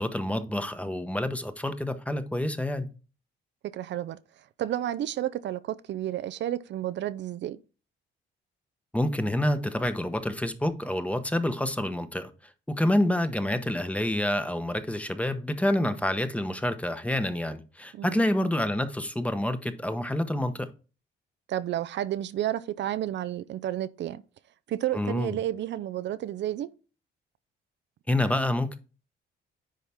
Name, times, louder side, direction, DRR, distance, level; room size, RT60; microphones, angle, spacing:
voice 1, 0.0-2.9 8.9-12.3 12.7-20.7 24.9-25.4 28.1-28.8, left 1 dB, 5° left, 1.0 m, -28 dB
voice 2, 3.6-4.2 4.6-7.6 17.9-18.2 21.5-24.2 24.7-26.7, right 12 dB, 65° right, 0.5 m, -31 dB
10.0 x 4.1 x 3.5 m
cardioid pair, 90°, 20 cm